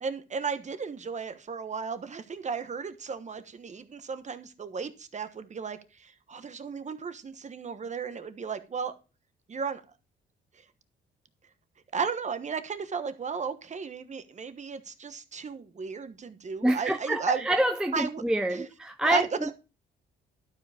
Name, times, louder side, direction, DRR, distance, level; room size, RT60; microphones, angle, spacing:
voice 1, 0.0-8.9 9.5-9.8 10.5-10.6 11.9-17.4 17.9-18.2 18.5-18.7 19.0-19.5, right 5 dB, 35° right, 1.2 m, -34 dB
voice 2, 16.6-19.3, right 1 dB, 5° right, 0.5 m, -26 dB
12.0 x 5.0 x 5.0 m
cardioid pair, 90°, 20 cm